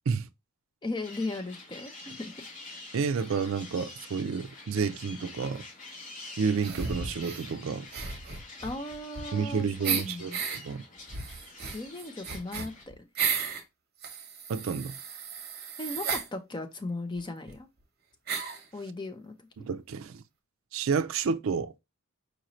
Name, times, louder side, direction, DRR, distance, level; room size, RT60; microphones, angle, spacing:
voice 1, 0.8-2.3 8.6-10.4 11.7-13.1 15.8-17.7 18.7-19.5, left 2 dB, 20° left, 0.5 m, -37 dB
sound 1, 1.0-12.8, left 2 dB, 35° left, 0.9 m, -47 dB
voice 2, 2.9-5.7 6.4-7.9 9.3-10.8 14.5-15.0 19.6-20.2 20.7-21.7, right 5 dB, 65° right, 0.4 m, -30 dB
sound 2, 6.6-7.5 7.9-9.5 9.8-10.6 11.1-13.6 14.0-16.3 17.2-17.3 17.5-17.6 18.3-18.6, right 6 dB, 45° right, 0.9 m, -34 dB
4.9 x 2.6 x 3.0 m
head